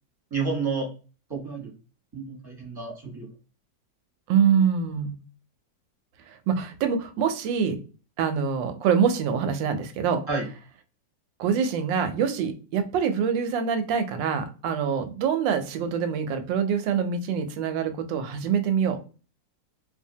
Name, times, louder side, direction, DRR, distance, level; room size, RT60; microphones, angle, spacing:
voice 1, 0.3-0.9 1.3-1.7 2.1-3.3 10.3-10.4, right 4 dB, 15° right, -3 dB, 0.9 m, -30 dB
voice 2, 4.3-5.2 6.3-7.8 8.2-10.2 11.4-19.0, right 7 dB, 90° right, 8 dB, 1.3 m, -25 dB
2.7 x 2.4 x 2.6 m, 0.35 s
omnidirectional pair, 1.9 m